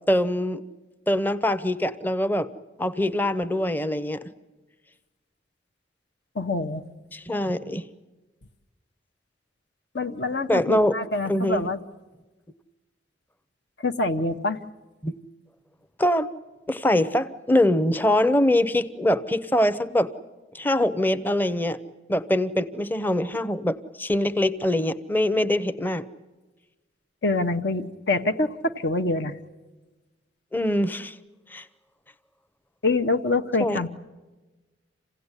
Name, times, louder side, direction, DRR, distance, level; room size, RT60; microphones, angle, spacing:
voice 1, 0.1-0.6 1.1-2.5 2.8-4.2 7.1-7.8 10.5-10.9 11.3-11.6 15.0-15.1 16.0-16.3 16.7-20.1 20.5-21.8 22.1-26.0 30.5-31.1 31.5-31.6 33.6-33.8, left 1 dB, 10° left, 13 dB, 0.7 m, -23 dB
voice 2, 6.3-6.8 9.9-11.8 13.8-14.6 27.2-29.4 32.8-33.9, left 2 dB, 65° left, 8 dB, 1.0 m, -25 dB
27.5 x 16.5 x 9.8 m, 1.2 s
head